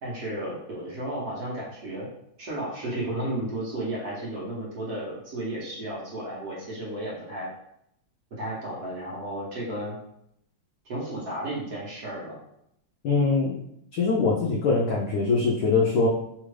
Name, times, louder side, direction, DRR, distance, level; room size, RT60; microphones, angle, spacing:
voice 1, 0.0-2.1 2.4-7.5 8.3-10.0 10.8-12.4, right 1 dB, 60° right, -5 dB, 1.2 m, -33 dB
voice 2, 13.0-13.6 13.9-16.1, left 4 dB, 80° left, -3 dB, 0.8 m, -23 dB
3.5 x 2.4 x 3.1 m, 0.76 s
omnidirectional pair, 2.2 m